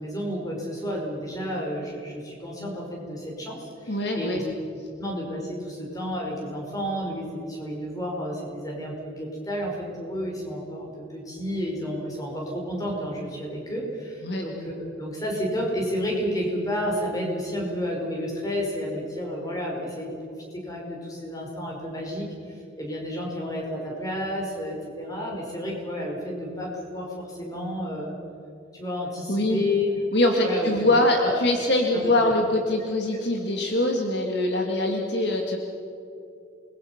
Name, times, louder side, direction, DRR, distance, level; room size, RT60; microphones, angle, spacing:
voice 1, 0.0-4.4 5.0-28.2 28.7-29.9 30.4-30.8 31.1-31.5 31.9-32.3 33.1-33.2, left 1 dB, 20° left, -1 dB, 5.1 m, -31 dB
voice 2, 3.9-4.4 14.2-14.4 29.3-29.6 30.1-35.6, left 1 dB, 55° left, 2 dB, 2.1 m, -23 dB
28.0 x 21.5 x 5.9 m, 2.8 s
head